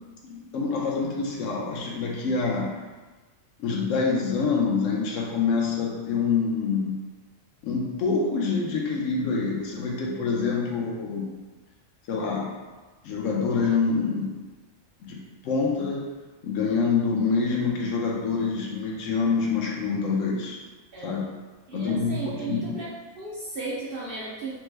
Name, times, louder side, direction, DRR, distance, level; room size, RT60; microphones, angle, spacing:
voice 1, 0.2-2.7 3.6-7.0 7.6-11.3 12.1-12.5 13.0-14.3 15.0-16.0 16.4-20.6 21.0-21.3 21.7-22.8, left 4 dB, 75° left, -2 dB, 0.9 m, -26 dB
voice 2, 21.7-22.9 23.2-24.6, right 4 dB, 60° right, -6 dB, 0.6 m, -35 dB
3.2 x 2.0 x 3.2 m, 1.3 s
omnidirectional pair, 1.4 m